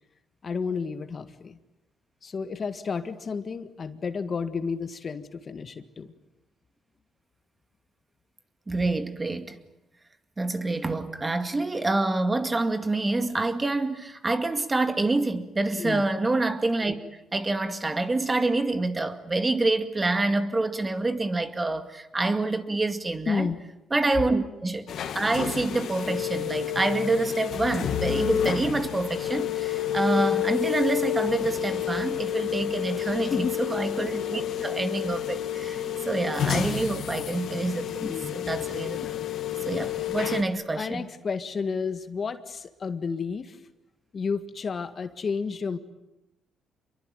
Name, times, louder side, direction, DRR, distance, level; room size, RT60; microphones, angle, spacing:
voice 1, 0.4-1.6 2.2-6.1 15.8-16.0 23.3-23.6 33.2-33.5 38.0-38.4 40.8-43.6 44.1-45.8, left 5 dB, 45° left, 1.7 m, -31 dB
voice 2, 8.7-9.6 10.4-17.0 17.3-23.5 23.9-24.9 25.1-39.1 39.7-41.1, right 2 dB, 20° right, 2.2 m, -27 dB
sound 1, 24.9-40.4, left 10 dB, 70° left, 2.6 m, -30 dB
26.5 x 23.0 x 9.1 m
cardioid pair, 90°, 0 cm